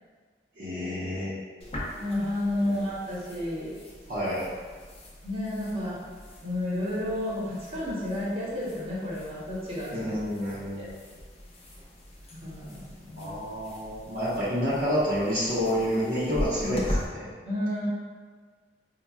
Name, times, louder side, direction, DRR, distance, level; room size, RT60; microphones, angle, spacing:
voice 1, 0.6-1.3 4.1-4.4 9.9-10.9 13.2-17.3, equal, 55° right, -10 dB, 0.9 m, -29 dB
sound 1, 1.6-17.1, equal, 35° left, 0.7 m, -41 dB
voice 2, 2.0-3.7 5.2-6.0 6.4-10.1 10.5-10.9 12.3-13.5 16.6-16.8 17.4-17.9, left 1 dB, 35° right, -8 dB, 1.1 m, -31 dB
5.3 x 2.3 x 2.3 m, 1.5 s
head